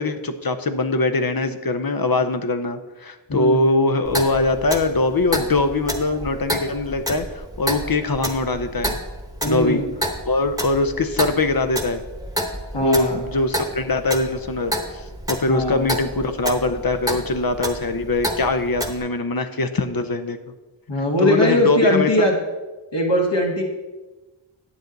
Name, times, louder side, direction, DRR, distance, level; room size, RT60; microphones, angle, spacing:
voice 1, 0.0-9.0 9.5-9.8 10.3-12.0 12.8-20.4 21.2-22.3, left 2 dB, 50° left, 9 dB, 0.7 m, -22 dB
voice 2, 3.3-3.6 9.4-9.9 12.7-13.2 15.5-15.9 20.9-22.4 22.9-23.6, left 1 dB, 65° left, -2 dB, 1.8 m, -20 dB
Clock, 4.0-19.0, equal, 10° right, 1.1 m, -30 dB
10.0 x 7.9 x 4.0 m, 1.2 s
wide cardioid pair, 50°, 46 cm